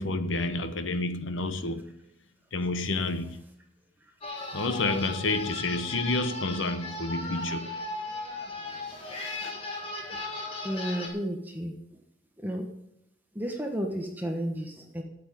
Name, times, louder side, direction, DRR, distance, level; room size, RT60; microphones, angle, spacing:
voice 1, 0.0-1.9 2.5-3.4 4.5-7.7 9.2-9.5, left 2 dB, 75° left, 1.0 m, -29 dB
sound 1, 4.2-11.1, left 2 dB, 30° left, 2.0 m, -37 dB
voice 2, 10.6-11.7 12.4-12.6 13.3-15.0, equal, 10° right, 1.2 m, -32 dB
8.7 x 8.1 x 9.3 m
head